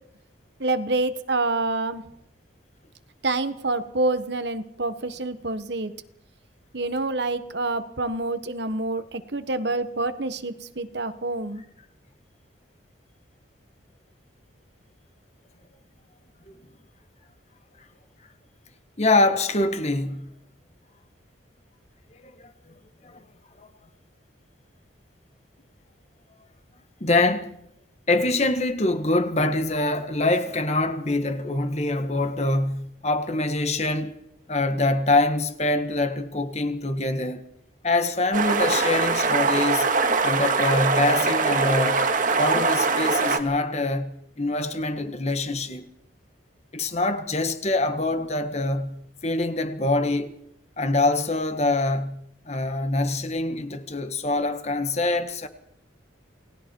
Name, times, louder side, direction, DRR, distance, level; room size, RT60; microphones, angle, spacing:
voice 1, 0.6-2.0 3.2-5.9 6.7-11.6, right 2 dB, 60° right, 1.4 m, -27 dB
voice 2, 19.0-20.3 22.2-22.5 23.0-23.2 23.6-23.7 27.0-27.6 28.1-34.1 34.5-37.5 37.8-39.9 40.2-45.9 46.7-50.4 50.8-55.5, left 2 dB, 35° left, 1.6 m, -25 dB
sound 1, 38.3-43.4, right 4 dB, 40° right, 2.0 m, -22 dB
29.0 x 19.0 x 4.7 m
head